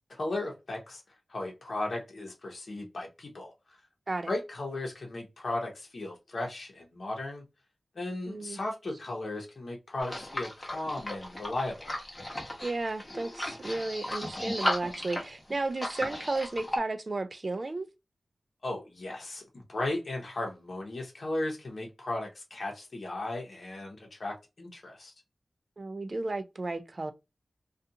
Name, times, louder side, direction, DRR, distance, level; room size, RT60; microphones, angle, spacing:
voice 1, 0.1-1.0 1.3-3.5 4.3-7.4 7.9-11.9 18.6-25.1, left 2 dB, 65° left, 0.8 m, -36 dB
voice 2, 8.3-8.6 12.6-17.9 25.8-27.1, right 2 dB, 45° right, 0.4 m, -33 dB
sound 1, 10.0-16.8, left 1 dB, 20° left, 1.0 m, -35 dB
2.4 x 2.3 x 2.7 m
wide cardioid pair, 85°, 0 cm